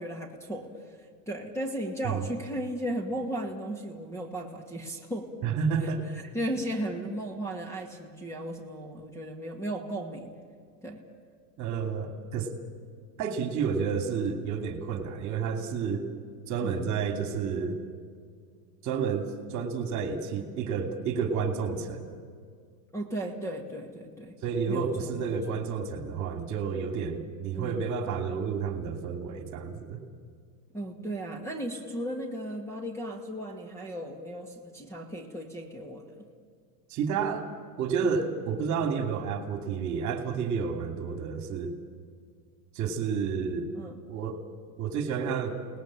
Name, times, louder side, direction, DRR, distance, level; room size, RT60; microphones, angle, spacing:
voice 1, 0.0-5.3 5.8-10.3 10.8-11.0 16.6-16.8 22.9-24.3 24.7-25.6 27.5-27.8 30.7-36.3 43.7-44.0, right 1 dB, 5° left, 3 dB, 2.2 m, -36 dB
voice 2, 5.4-6.1 11.6-12.5 13.2-16.1 16.5-17.8 18.8-22.2 24.4-30.0 36.9-37.5 37.8-41.7 42.7-43.7 44.1-44.4 44.8-45.6, right 6 dB, 35° right, 6 dB, 2.8 m, -30 dB
30.0 x 19.5 x 8.9 m, 2.1 s
supercardioid pair, 155°, 49 cm